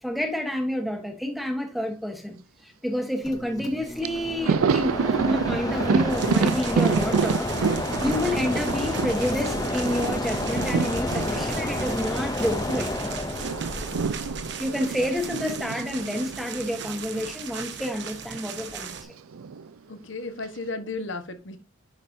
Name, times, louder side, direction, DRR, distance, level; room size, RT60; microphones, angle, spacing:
voice 1, 0.0-13.1 14.6-18.9, left 1 dB, ahead, 1.2 m, -29 dB
Mechanisms, 3.2-15.6, left 2 dB, 15° left, 0.6 m, -31 dB
Thunder, 3.7-3.8 4.0-12.8 13.1-17.4 17.7-17.8 19.0-19.7, right 5 dB, 85° right, 0.4 m, -28 dB
sound 1, 6.1-19.0, right 7 dB, 55° right, 1.1 m, -38 dB
voice 2, 19.9-21.6, left 3 dB, 60° left, 1.3 m, -34 dB
10.5 x 5.2 x 2.6 m
head